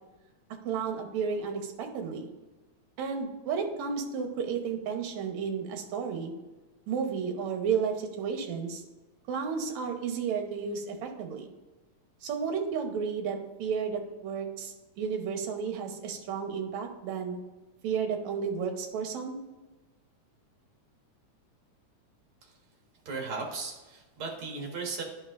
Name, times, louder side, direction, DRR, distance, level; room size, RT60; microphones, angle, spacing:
voice 1, 0.7-2.3 3.0-6.3 6.9-8.8 9.3-11.5 12.2-17.4 17.8-19.4, right 6 dB, 70° right, 4 dB, 2.2 m, -32 dB
voice 2, 23.1-25.0, right 4 dB, 50° right, 0 dB, 2.2 m, -36 dB
10.5 x 5.8 x 2.5 m, 1.2 s
omnidirectional pair, 3.5 m